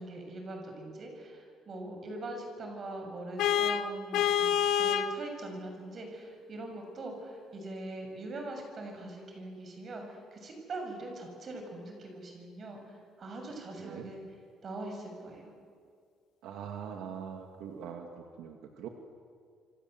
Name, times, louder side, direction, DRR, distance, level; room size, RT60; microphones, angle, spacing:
voice 1, 0.0-14.2 14.6-15.5, right 2 dB, 35° right, 3 dB, 6.9 m, -42 dB
Vehicle horn car horn honking, 3.4-5.2, left 9 dB, 70° left, 1.3 m, -27 dB
voice 2, 13.8-14.1 16.4-18.1 18.4-18.9, right 8 dB, 75° right, 3 dB, 2.6 m, -42 dB
27.5 x 25.5 x 8.1 m, 2.2 s
cardioid pair, 150°, 0 cm